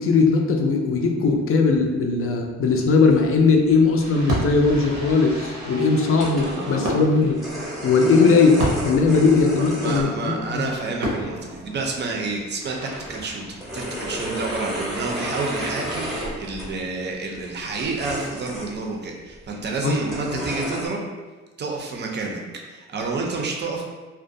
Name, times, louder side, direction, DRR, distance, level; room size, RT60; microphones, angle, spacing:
voice 1, 0.0-7.4 7.8-10.6 19.8-19.9, left 4 dB, 45° left, 3 dB, 0.4 m, -19 dB
sound 1, 3.1-3.2 3.7-3.9 4.1-4.2 4.4-4.5 5.1-5.2 6.1-6.8 7.1-10.0 10.4-10.6 11.8-11.9 12.4-12.5 12.8-16.8 17.3-18.8 19.4-19.5 20.1-20.9, equal, ahead, 0.7 m, -32 dB
Fireworks, 4.0-14.2, right 2 dB, 90° right, 0.7 m, -33 dB
voice 2, 6.4-7.0 9.6-21.0 21.6-22.4 22.7-23.8, right 3 dB, 35° right, 1 dB, 0.5 m, -29 dB
2.4 x 2.1 x 2.6 m, 1.3 s
cardioid pair, 90°, 30 cm